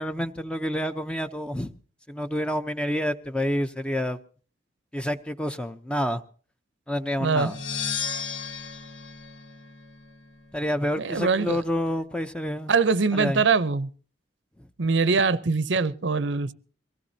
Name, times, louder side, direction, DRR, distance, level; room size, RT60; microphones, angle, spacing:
voice 1, 0.0-1.7 2.1-4.2 4.9-6.2 6.9-7.6 10.5-12.7 13.1-13.4, equal, 5° left, 0.6 m, -28 dB
voice 2, 7.2-7.5 11.0-11.6 12.7-13.9 14.8-16.5, right 4 dB, 70° right, 0.7 m, -23 dB
sound 1, 7.4-10.2, left 6 dB, 80° left, 1.4 m, -34 dB
23.5 x 17.5 x 2.7 m
head